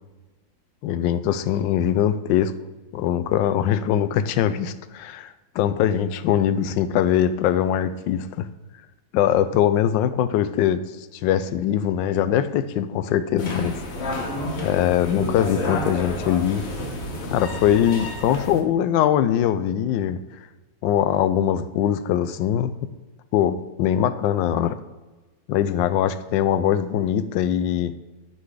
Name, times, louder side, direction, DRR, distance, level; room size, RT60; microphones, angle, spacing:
voice 1, 0.8-2.5 2.9-8.5 9.1-10.8 11.1-13.8 14.6-16.6 17.3-20.2 20.8-22.7 23.3-24.8 25.5-27.9, left 10 dB, 80° left, 12 dB, 1.2 m, -22 dB
sound 1, 13.4-18.6, left 2 dB, 45° left, 1.1 m, -30 dB
12.0 x 3.9 x 4.8 m, 1.2 s
omnidirectional pair, 2.0 m